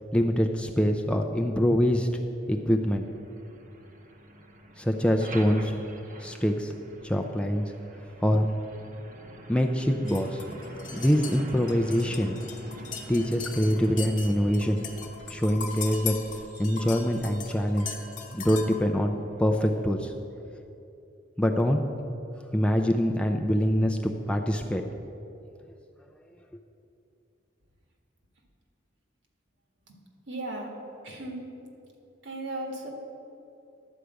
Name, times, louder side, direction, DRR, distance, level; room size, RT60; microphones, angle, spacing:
voice 1, 0.1-2.1 2.5-3.1 4.8-5.7 6.2-6.7 7.0-7.7 8.2-8.5 9.5-10.4 10.9-12.4 13.1-14.9 15.3-16.2 16.6-17.9 18.3-20.1 21.4-21.8 22.5-24.8, equal, 5° left, 3 dB, 0.4 m, -24 dB
Truck, 2.4-20.0, right 1 dB, 45° right, 0.7 m, -47 dB
sound 1, 10.1-18.8, left 6 dB, 45° left, 1.1 m, -39 dB
voice 2, 30.3-30.7 31.0-31.4 32.2-32.9, right 2 dB, 65° right, 1 dB, 1.7 m, -36 dB
11.5 x 4.9 x 8.0 m, 2.7 s
head